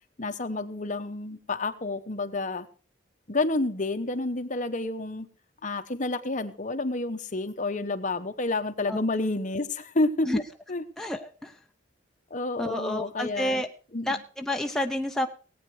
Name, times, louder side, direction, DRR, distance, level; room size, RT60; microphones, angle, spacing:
voice 1, 0.2-2.7 3.3-5.3 5.6-10.3 10.7-10.8 12.3-13.6 13.9-14.2, left 2 dB, 40° left, 8 dB, 1.0 m, -29 dB
voice 2, 11.0-11.6 12.6-13.7 14.0-15.3, left 1 dB, 5° left, 3 dB, 0.6 m, -29 dB
18.5 x 8.8 x 4.8 m, 0.39 s
head